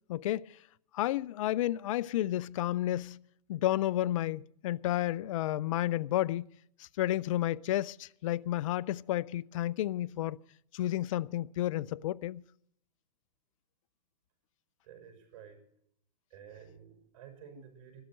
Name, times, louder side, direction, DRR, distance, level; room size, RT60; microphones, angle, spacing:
voice 1, 0.1-0.5 0.9-3.2 3.5-6.5 6.8-10.4 10.7-12.4, left 14 dB, 50° left, 0.5 m, -31 dB
voice 2, 14.8-15.6 16.3-18.0, right 8 dB, 50° right, 6.6 m, -52 dB
13.0 x 12.5 x 6.3 m
hypercardioid pair, 135°, 21 cm